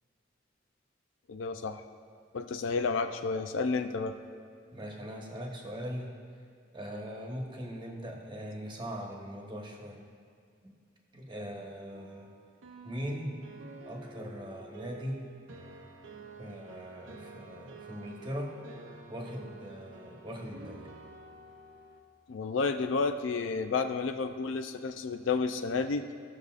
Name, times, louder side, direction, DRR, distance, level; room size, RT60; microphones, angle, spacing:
voice 1, 1.3-1.8 2.3-4.1 22.3-26.1, left 4 dB, 75° left, 8 dB, 0.4 m, -31 dB
voice 2, 4.7-6.1 6.7-10.0 10.6-10.7 11.1-12.3 12.8-13.3 13.9-15.2 16.4-18.5 19.1-20.9, equal, 25° right, 0 dB, 1.1 m, -40 dB
sound 1, 11.9-22.0, right 4 dB, 80° right, 0.7 m, -50 dB
15.5 x 6.5 x 2.5 m, 2.2 s
head